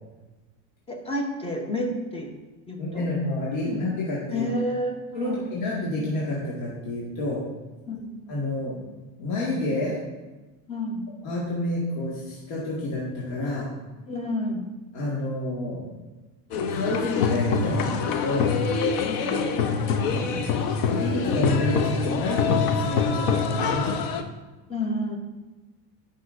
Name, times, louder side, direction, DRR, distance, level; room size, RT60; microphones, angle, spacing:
voice 1, 0.9-2.3 2.7-3.1 3.6-3.8 4.3-5.4 7.9-8.1 10.7-11.1 14.1-14.7 19.0-19.3 24.7-25.2, left 1 dB, 15° left, 3 dB, 0.8 m, -30 dB
voice 2, 2.8-4.5 5.1-7.4 8.3-8.8 9.2-10.0 11.2-13.7 14.9-15.9 16.7-18.5 20.0-20.5 20.8-24.1, left 2 dB, 80° left, -6 dB, 1.9 m, -29 dB
sound 1, 16.5-24.2, left 5 dB, 55° left, 0.7 m, -25 dB
9.9 x 5.4 x 2.5 m, 1.2 s
supercardioid pair, 135°, 42 cm